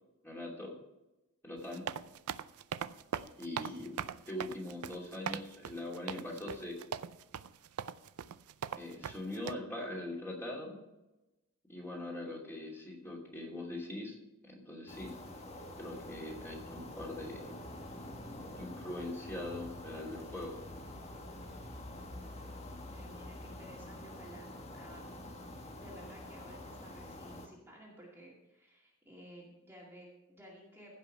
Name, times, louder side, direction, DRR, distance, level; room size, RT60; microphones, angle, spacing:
voice 1, 0.2-0.7 1.4-1.9 3.4-3.9 4.3-6.8 8.8-10.8 11.7-14.2 14.4-15.1 15.8-17.5 18.6-20.5, left 1 dB, 10° left, -3 dB, 2.7 m, -42 dB
sound 1, 1.6-9.5, right 7 dB, 80° right, 0.5 m, -40 dB
sound 2, 14.9-27.5, left 1 dB, 30° left, 1.4 m, -47 dB
voice 2, 22.9-25.0 25.8-31.0, right 1 dB, 10° right, -4 dB, 2.3 m, -54 dB
15.5 x 5.8 x 5.6 m, 0.99 s
head